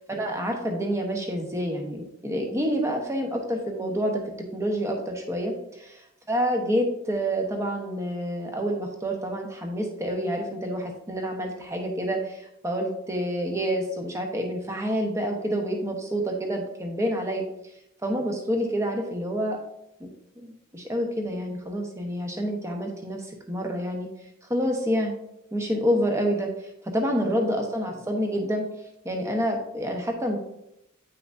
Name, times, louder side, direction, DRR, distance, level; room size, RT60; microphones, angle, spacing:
voice 1, 0.0-17.4 18.0-19.6 20.0-20.1 20.4-24.1 24.4-25.1 25.5-28.6 29.0-30.4, equal, 15° right, 2 dB, 0.9 m, -28 dB
9.2 x 5.8 x 2.6 m, 0.82 s
head